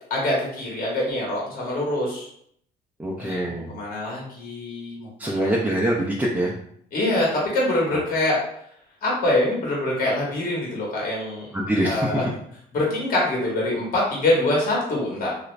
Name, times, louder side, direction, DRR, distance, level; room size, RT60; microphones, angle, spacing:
voice 1, 0.1-2.3 3.2-5.5 6.9-8.4 9.0-11.5 11.8-12.2 12.7-15.3, left 1 dB, 55° left, -4 dB, 1.3 m, -24 dB
voice 2, 3.0-3.7 5.2-6.5 7.9-8.0 11.5-12.2, right 1 dB, 10° right, -3 dB, 0.5 m, -24 dB
2.9 x 2.5 x 3.2 m, 0.69 s
cardioid pair, 110°, 17 cm